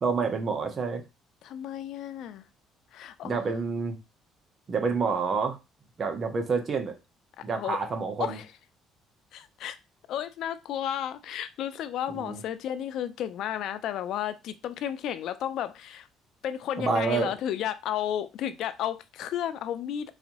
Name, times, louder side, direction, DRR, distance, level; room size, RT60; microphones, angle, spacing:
voice 1, 0.0-1.0 3.2-4.0 4.7-5.6 6.0-7.0 7.4-8.4 12.1-12.4 16.8-17.3, right 4 dB, 40° right, 0.8 m, -28 dB
voice 2, 1.4-2.4 2.9-3.4 7.5-7.8 8.2-8.5 9.3-9.8 10.1-16.1 16.4-20.1, left 10 dB, 70° left, 0.4 m, -33 dB
4.0 x 2.6 x 2.9 m
cardioid pair, 110°, 0 cm